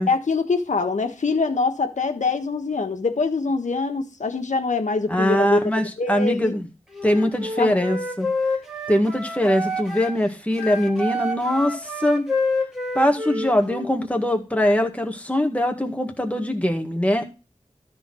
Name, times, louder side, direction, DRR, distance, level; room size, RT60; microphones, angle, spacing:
voice 1, 0.1-5.6 6.0-6.5 7.6-8.0, left 4 dB, 90° left, 1.4 m, -24 dB
voice 2, 5.1-6.7 7.0-8.3 8.9-12.3 12.9-17.3, left 1 dB, 10° left, 1.8 m, -22 dB
Wind instrument woodwind instrument, 6.9-10.2 10.5-13.9, left 2 dB, 5° right, 2.5 m, -28 dB
13.0 x 4.4 x 6.2 m
wide cardioid pair, 80°, 12 cm